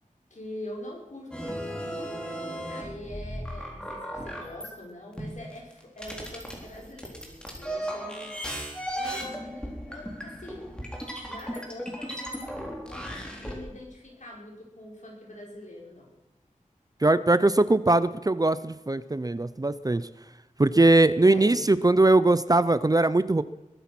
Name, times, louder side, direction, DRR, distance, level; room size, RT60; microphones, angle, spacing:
voice 1, 0.3-2.2 2.7-8.4 8.9-10.7 11.3-16.1 21.2-21.6, left 1 dB, 60° left, -2 dB, 5.4 m, -43 dB
sound 1, 1.3-4.7 5.2-13.6, equal, 5° left, 4.0 m, -36 dB
voice 2, 17.0-20.1 20.6-23.4, right 2 dB, 25° right, 15 dB, 0.6 m, -21 dB
21.5 x 10.0 x 6.1 m, 1.0 s
wide cardioid pair, 75°, 14 cm